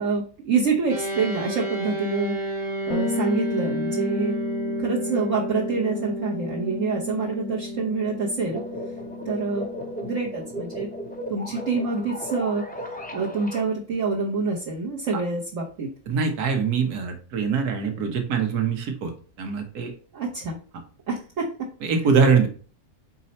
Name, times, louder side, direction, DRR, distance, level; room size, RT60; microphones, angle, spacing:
voice 1, 0.0-2.4 2.9-4.4 4.8-8.6 9.3-9.7 10.0-10.9 11.3-12.6 13.1-15.9 20.1-20.6 21.1-21.5, right 4 dB, 55° right, -5 dB, 1.3 m, -26 dB
sound 1, 0.9-12.4, right 1 dB, 40° right, 1.6 m, -33 dB
Bass guitar, 2.9-12.6, left 4 dB, 70° left, 1.1 m, -34 dB
sound 2, 8.4-13.6, equal, 10° left, 0.4 m, -36 dB
voice 2, 16.1-19.1 19.4-19.9 21.8-22.5, right 5 dB, 75° right, 5 dB, 1.6 m, -23 dB
5.3 x 4.1 x 4.3 m, 0.40 s
omnidirectional pair, 1.7 m